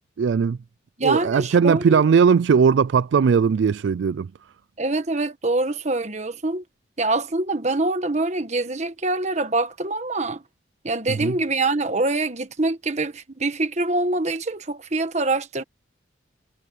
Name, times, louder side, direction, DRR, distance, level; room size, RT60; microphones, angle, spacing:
voice 1, 0.2-0.6 1.0-4.3 11.1-11.4, right 6 dB, 70° right, 0.3 m, -19 dB
voice 2, 1.0-2.0 4.8-6.6 7.0-10.4 10.8-15.6, right 2 dB, 35° right, 1.4 m, -24 dB
head